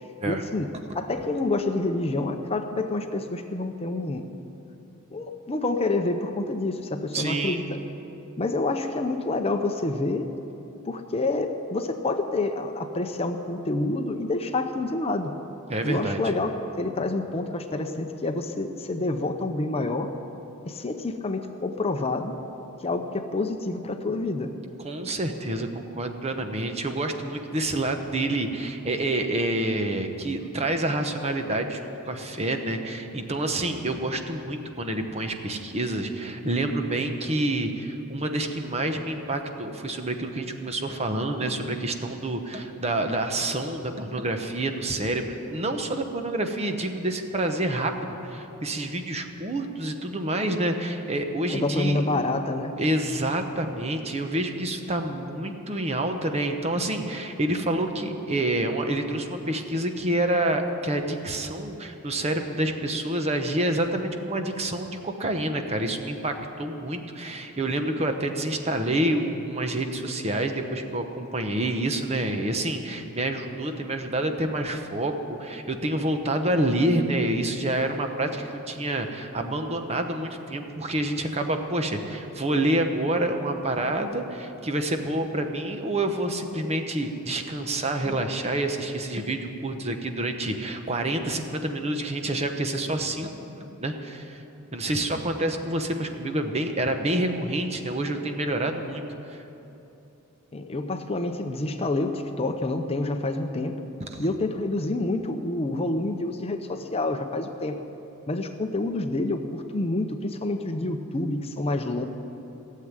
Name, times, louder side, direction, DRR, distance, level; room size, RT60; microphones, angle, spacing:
voice 1, 0.2-0.7 0.9-4.3 5.1-7.8 8.4-10.3 10.9-15.4 15.8-20.1 20.7-22.4 22.8-24.5 51.5-52.8 95.1-95.2 100.5-103.8 104.2-107.8 108.3-112.0, left 2 dB, 25° left, 6 dB, 0.7 m, -28 dB
voice 2, 7.1-7.6 15.7-16.2 24.8-52.0 52.8-93.3 93.6-94.4 94.7-99.0 104.1-104.3, right 1 dB, 30° right, 5 dB, 0.9 m, -28 dB
17.0 x 7.6 x 9.6 m, 3.0 s
head